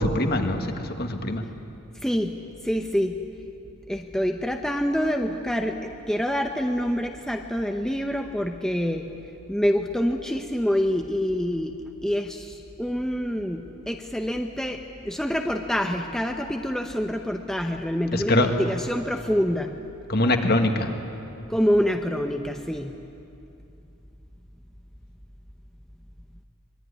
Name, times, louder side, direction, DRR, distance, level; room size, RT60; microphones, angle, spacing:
voice 1, 0.0-1.4 18.1-18.6 20.1-20.9, left 1 dB, 45° left, 5 dB, 1.9 m, -23 dB
voice 2, 2.0-2.4 2.6-3.2 3.9-9.1 9.5-11.7 12.0-19.7 21.5-22.9, equal, 5° left, 3 dB, 0.8 m, -26 dB
25.0 x 21.5 x 9.9 m, 2.7 s
head